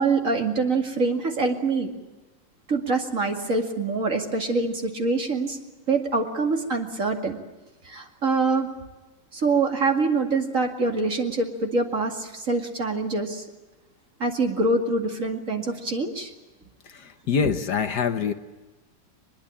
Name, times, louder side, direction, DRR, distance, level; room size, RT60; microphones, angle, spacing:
voice 1, 0.0-1.9 2.7-5.6 5.9-7.4 7.8-8.7 9.3-13.4 14.2-16.3, right 3 dB, 45° right, 3 dB, 2.6 m, -25 dB
voice 2, 16.8-18.3, left 6 dB, 60° left, 9 dB, 1.6 m, -25 dB
22.5 x 21.5 x 8.6 m, 1.1 s
omnidirectional pair, 2.1 m